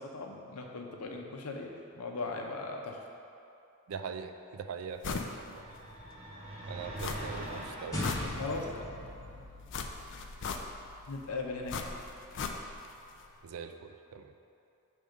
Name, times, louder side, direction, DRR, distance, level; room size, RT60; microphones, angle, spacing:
voice 1, 0.0-3.0 8.4-8.8 11.1-12.0, left 3 dB, 85° left, 2 dB, 0.7 m, -38 dB
voice 2, 3.9-5.7 6.7-8.7 13.4-14.3, right 6 dB, 75° right, 7 dB, 0.4 m, -42 dB
sound 1, 5.0-5.4 5.7-5.8 7.0-7.5 7.8-8.8 9.7-11.0 11.7-12.9 13.2-13.3, left 5 dB, 55° left, 0.4 m, -37 dB
sound 2, 5.1-8.0, right 1 dB, 25° right, 0.7 m, -43 dB
sound 3, 7.9-12.6, left 1 dB, 15° left, 1.1 m, -42 dB
6.4 x 3.5 x 5.0 m, 2.6 s
head